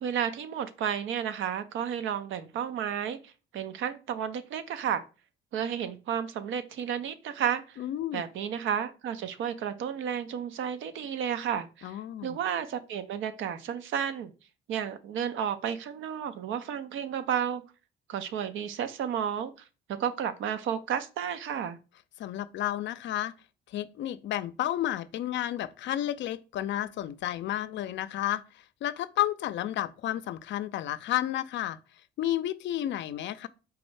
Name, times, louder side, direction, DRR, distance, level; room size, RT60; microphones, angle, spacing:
voice 1, 0.0-5.0 5.5-7.8 8.1-14.3 14.7-17.6 18.1-19.5 19.9-21.8, right 8 dB, 80° right, 0.6 m, -32 dB
voice 2, 7.8-8.2 11.8-12.4 22.2-23.3 23.7-31.8 32.2-33.5, left 12 dB, 65° left, 0.4 m, -31 dB
4.7 x 2.1 x 4.6 m
cardioid pair, 90°, 20 cm